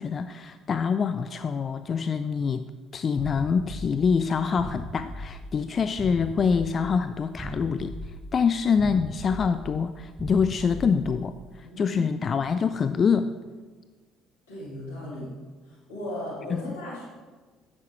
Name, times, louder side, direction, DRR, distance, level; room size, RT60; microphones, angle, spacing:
voice 1, 0.0-8.0 8.3-13.3 16.5-16.8, left 6 dB, 45° left, 11 dB, 0.3 m, -25 dB
sound 1, 3.2-11.4, equal, 15° right, 1.4 m, -39 dB
voice 2, 11.6-12.0 14.5-15.3 15.7-17.0, left 1 dB, 85° left, -6 dB, 2.9 m, -37 dB
10.0 x 7.5 x 3.0 m, 1.4 s
hypercardioid pair, 60°, 0 cm